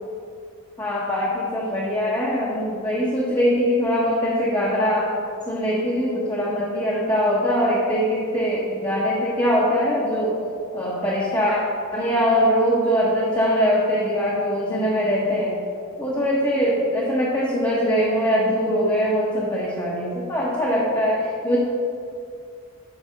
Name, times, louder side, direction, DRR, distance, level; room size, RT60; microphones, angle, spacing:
voice 1, 0.8-5.2 5.5-10.4 10.7-11.6 11.9-15.6 16.0-21.6, equal, 15° left, -6 dB, 0.9 m, -22 dB
8.9 x 3.4 x 6.5 m, 2.4 s
head